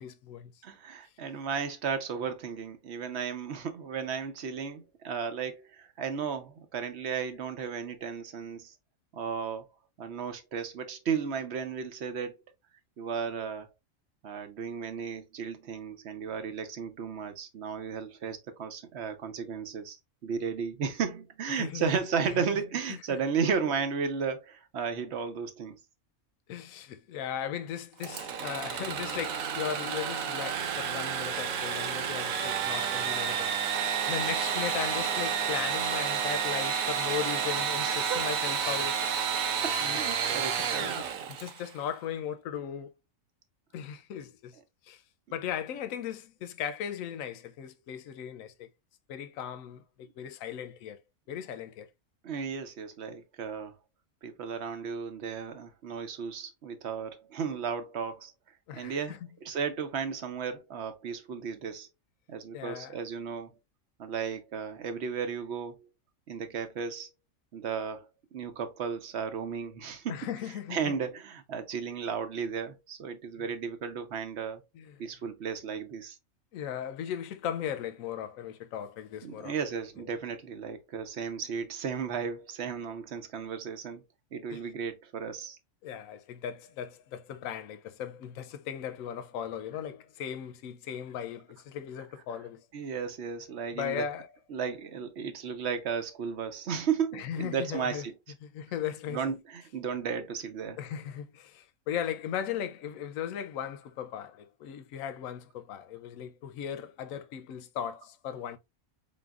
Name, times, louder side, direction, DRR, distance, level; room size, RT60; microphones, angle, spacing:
voice 1, 0.0-0.5 21.5-22.0 22.3-22.4 22.9-23.0 26.5-33.6 34.1-39.1 39.8-40.0 40.6-42.9 43.7-44.6 44.8-45.0 45.3-48.7 49.1-51.0 51.3-51.9 58.7-59.2 62.5-63.0 70.1-70.9 74.7-75.0 76.5-79.5 84.5-84.6 85.8-92.7 93.7-94.3 97.1-98.1 98.4-99.2 100.8-108.6, left 9 dB, 75° left, 1.0 m, -37 dB
voice 2, 0.6-8.7 9.1-9.7 10.0-12.4 13.0-13.7 14.2-20.0 20.2-25.8 37.8-38.3 39.6-41.0 52.2-53.7 54.2-58.3 58.7-61.9 62.3-63.5 64.0-65.9 66.3-67.1 67.5-70.2 70.7-74.6 75.0-76.2 79.2-84.0 84.3-85.6 92.7-94.0 94.5-98.1 99.1-100.8, right 6 dB, 55° right, 0.9 m, -34 dB
Engine / Sawing, 28.0-41.7, right 7 dB, 80° right, 1.1 m, -30 dB
4.0 x 3.7 x 2.3 m
omnidirectional pair, 1.5 m